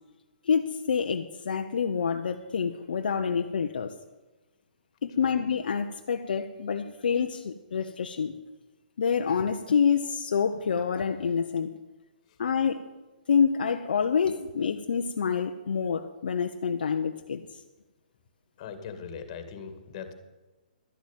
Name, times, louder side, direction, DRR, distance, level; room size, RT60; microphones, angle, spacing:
voice 1, 0.4-3.9 5.0-8.4 9.0-11.8 12.4-12.8 13.3-17.4, left 6 dB, 75° left, 6 dB, 0.8 m, -27 dB
voice 2, 18.6-20.1, left 6 dB, 40° left, 9 dB, 2.1 m, -40 dB
12.5 x 7.4 x 8.9 m, 1.1 s
hypercardioid pair, 145°, 5 cm